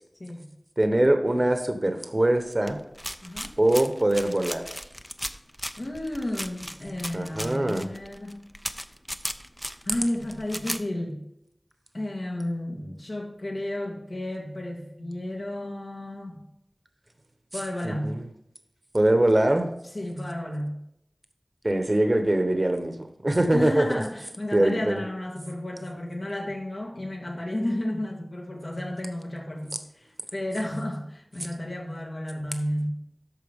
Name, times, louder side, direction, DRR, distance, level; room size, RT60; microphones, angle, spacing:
voice 1, 0.8-2.8 3.6-4.7 7.1-7.9 17.8-18.2 18.9-19.7 21.6-24.0 24.5-25.0, right 1 dB, 40° right, 6 dB, 1.1 m, -23 dB
sound 1, 2.7-10.8, equal, 5° left, 0.6 m, -36 dB
voice 2, 3.2-3.5 5.8-8.4 9.8-11.2 11.9-16.4 17.5-18.2 19.9-20.8 23.5-32.9, left 1 dB, 70° left, -1 dB, 2.1 m, -32 dB
13.0 x 4.6 x 3.6 m, 0.79 s
wide cardioid pair, 45°, 0 cm